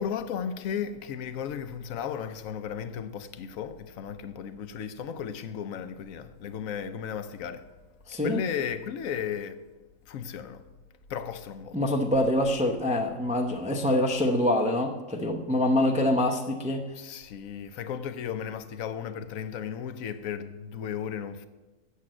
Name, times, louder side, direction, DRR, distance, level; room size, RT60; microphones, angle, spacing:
voice 1, 0.0-7.6 8.2-9.6 10.1-10.6 11.1-11.8 17.0-21.5, left 8 dB, 70° left, 1.0 m, -35 dB
voice 2, 8.1-8.4 11.7-16.8, left 1 dB, 10° right, 0.5 m, -25 dB
8.4 x 7.3 x 7.6 m
omnidirectional pair, 1.6 m